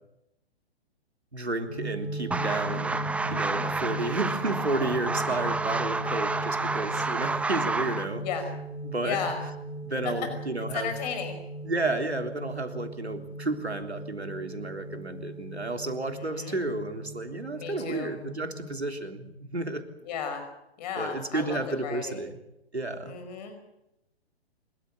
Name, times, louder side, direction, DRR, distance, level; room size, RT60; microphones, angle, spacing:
voice 1, 1.3-3.0 3.3-8.3 8.8-9.3 9.8-10.9 11.6-19.9 21.0-22.4 22.7-23.1, right 2 dB, 90° right, 6 dB, 3.5 m, -32 dB
sound 1, 1.7-18.8, right 2 dB, 80° left, 6.5 m, -38 dB
sound 2, 2.3-8.1, right 3 dB, 5° right, 1.0 m, -30 dB
voice 2, 9.0-9.4 10.0-10.1 10.7-11.4 16.1-16.6 17.6-18.1 20.0-20.4 20.8-22.2 23.0-23.6, left 7 dB, 40° left, 7 dB, 5.1 m, -34 dB
28.0 x 14.0 x 9.0 m, 0.89 s
figure-of-eight pair, 125°, 32 cm